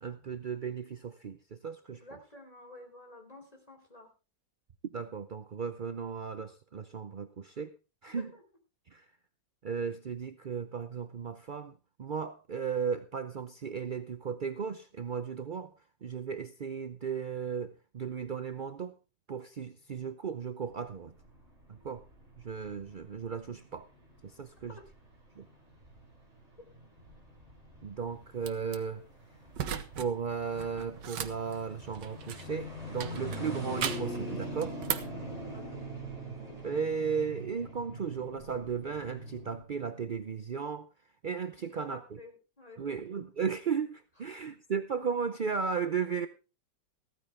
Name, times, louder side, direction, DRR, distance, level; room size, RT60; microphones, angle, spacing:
voice 1, 0.0-2.0 4.8-7.8 8.0-8.3 8.9-9.1 9.6-15.7 16.0-19.0 19.3-21.1 21.7-22.0 22.4-23.9 24.2-24.8 25.4-25.5 27.8-29.0 30.0-34.8 36.6-40.9 41.2-42.2 42.8-46.3, right 6 dB, 60° right, 10 dB, 0.5 m, -35 dB
voice 2, 1.9-4.1 8.1-8.4 24.7-24.8 35.5-35.9 41.6-43.2, left 1 dB, 20° left, 3 dB, 4.1 m, -51 dB
sound 1, 20.7-39.6, right 1 dB, 20° right, 4.1 m, -43 dB
sound 2, 28.4-28.8 29.5-30.1 30.4-32.6 33.0-34.2 34.6-35.2, right 9 dB, 90° right, 1.7 m, -37 dB
15.0 x 14.0 x 3.4 m, 0.30 s
omnidirectional pair, 1.8 m